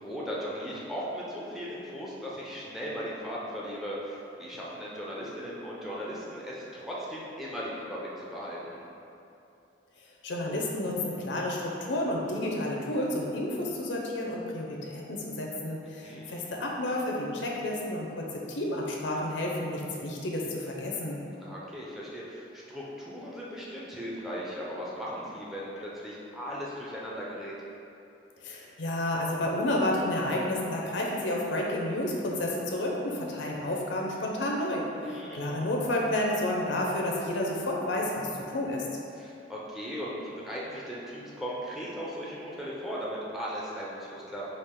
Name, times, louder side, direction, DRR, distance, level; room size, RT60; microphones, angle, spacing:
voice 1, 0.0-8.8 15.9-16.4 21.4-27.6 35.0-35.6 39.1-44.4, equal, ahead, -6 dB, 0.5 m, -37 dB
voice 2, 10.2-21.2 28.4-38.3 38.5-38.9, left 1 dB, 80° left, -2 dB, 0.6 m, -30 dB
5.0 x 2.4 x 3.6 m, 2.7 s
head